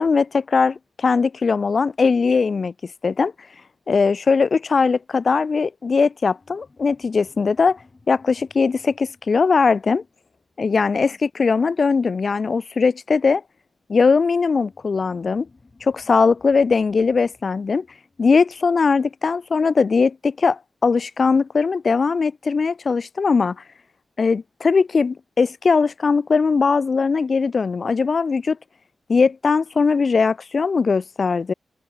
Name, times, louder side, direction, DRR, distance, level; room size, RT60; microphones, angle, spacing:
voice 1, 0.0-3.3 3.9-7.8 8.1-10.0 10.6-13.4 13.9-15.5 15.8-17.9 18.2-23.6 24.2-28.6 29.1-31.5, left 4 dB, 40° left, 0.4 m, -20 dB
sound 1, 6.2-11.2 14.5-19.5, left 3 dB, 25° left, 4.6 m, -56 dB
open air
wide cardioid pair, 165°, 0 cm